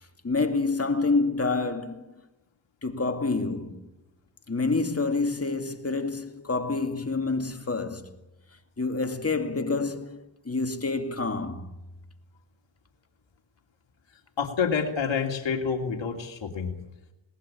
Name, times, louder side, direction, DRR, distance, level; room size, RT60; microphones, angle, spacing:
voice 1, 0.2-2.1 2.8-3.8 4.5-8.1 8.8-10.2 10.4-11.7, left 3 dB, 30° left, 2.5 m, -27 dB
voice 2, 14.4-16.7, left 6 dB, 60° left, 2.9 m, -28 dB
21.0 x 18.5 x 8.8 m
cardioid pair, 65°, 49 cm